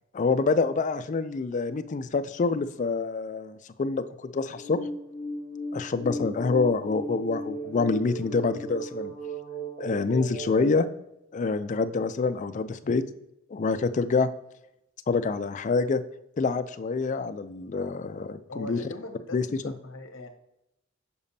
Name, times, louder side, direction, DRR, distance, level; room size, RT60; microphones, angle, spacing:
voice 1, 0.1-4.0 4.3-4.8 5.7-9.1 9.8-10.9 11.3-13.0 13.5-14.3 15.1-16.0 16.4-18.8 19.3-19.7, left 4 dB, 40° left, 11 dB, 0.4 m, -26 dB
sound 1, 4.6-10.7, right 1 dB, 20° left, 0.9 m, -36 dB
voice 2, 18.5-20.3, left 1 dB, 70° left, 4 dB, 1.0 m, -41 dB
7.0 x 5.0 x 2.7 m, 0.83 s
head